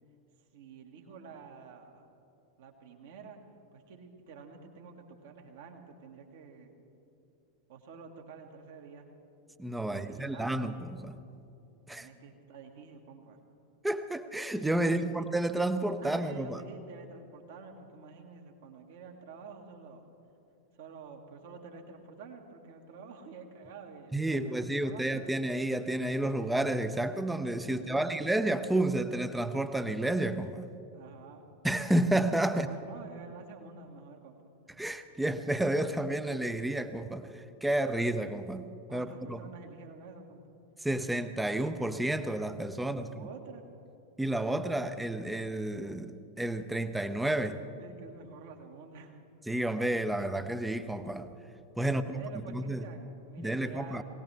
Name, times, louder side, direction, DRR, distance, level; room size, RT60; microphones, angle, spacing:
voice 1, 0.5-2.0 2.6-3.4 3.7-6.7 7.7-9.1 9.8-10.7 11.9-13.4 14.8-15.3 16.0-20.0 20.7-25.1 27.7-28.2 30.9-31.5 32.5-34.4 38.9-40.4 43.0-43.6 47.8-49.2 51.8-54.0, right 5 dB, 55° right, 3 dB, 1.8 m, -49 dB
voice 2, 9.6-11.2 11.9-12.1 13.8-16.6 24.1-30.7 31.6-32.7 34.8-39.4 40.8-43.3 44.2-47.6 49.5-51.3 51.8-52.2 52.5-52.8 53.4-54.0, right 1 dB, 5° right, 11 dB, 0.7 m, -31 dB
22.0 x 17.5 x 3.4 m, 2.7 s
figure-of-eight pair, 90°, 0 cm